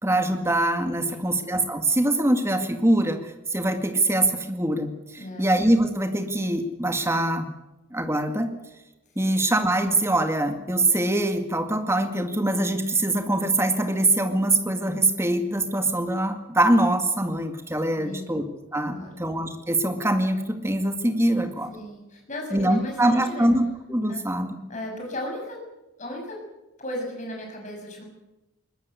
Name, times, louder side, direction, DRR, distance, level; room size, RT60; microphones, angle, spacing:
voice 1, 0.0-7.5 7.9-8.5 9.2-18.4 18.7-21.7 22.5-23.6 23.9-24.6, right 1 dB, 10° right, 6 dB, 2.0 m, -23 dB
voice 2, 1.0-1.4 5.2-5.5 9.2-9.3 18.0-18.3 18.9-19.2 21.7-23.5 24.1-24.2 24.7-25.6 26.0-26.4 26.8-28.0, left 1 dB, 35° left, 1 dB, 7.0 m, -36 dB
21.5 x 19.5 x 8.2 m, 1.0 s
head